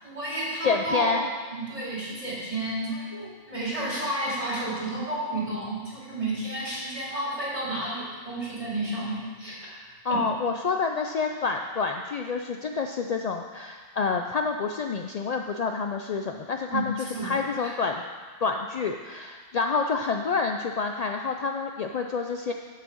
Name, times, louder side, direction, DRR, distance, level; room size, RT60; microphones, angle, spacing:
voice 1, 0.0-1.2 1.5-9.8 10.1-10.2 16.7-16.9 17.1-17.7, right 1 dB, 30° right, -6 dB, 2.6 m, -31 dB
voice 2, 0.6-1.3 10.0-16.9 17.2-18.0 18.4-22.5, left 4 dB, 75° left, 4 dB, 0.3 m, -28 dB
7.5 x 6.1 x 7.0 m, 1.5 s
omnidirectional pair, 1.2 m